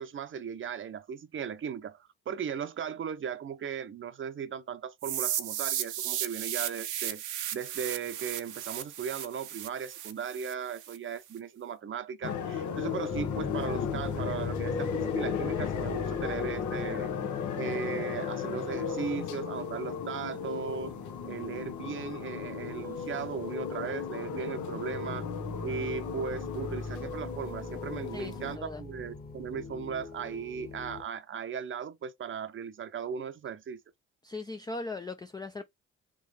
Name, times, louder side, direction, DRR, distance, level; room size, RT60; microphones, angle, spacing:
voice 1, 0.0-17.1 17.6-20.9 21.2-25.3 25.6-33.8, right 7 dB, 40° right, 0.7 m, -37 dB
sound 1, 5.0-11.0, right 11 dB, 80° right, 0.8 m, -35 dB
sound 2, 12.2-28.6, left 8 dB, 75° left, 0.9 m, -36 dB
sound 3, 13.1-31.0, left 3 dB, 30° left, 1.3 m, -40 dB
voice 2, 28.1-28.8 34.2-35.6, left 3 dB, 15° left, 0.4 m, -39 dB
3.7 x 3.1 x 3.4 m
cardioid pair, 90°, 30 cm